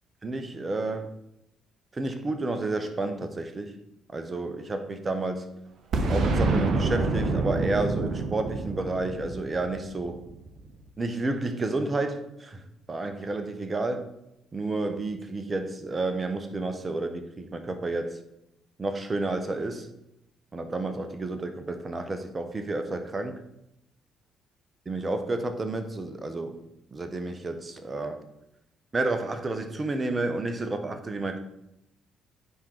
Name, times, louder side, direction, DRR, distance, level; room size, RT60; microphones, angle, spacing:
voice 1, 0.2-1.1 1.9-3.7 4.1-5.5 6.1-10.2 11.0-14.1 14.5-18.2 18.8-19.9 20.5-23.4 24.9-26.6 26.9-28.2 28.9-31.4, right 2 dB, 30° right, 8 dB, 1.0 m, -30 dB
Boom, 5.9-10.6, right 3 dB, 55° right, 0.9 m, -27 dB
9.6 x 3.9 x 4.5 m, 0.85 s
hypercardioid pair, 50°, 0 cm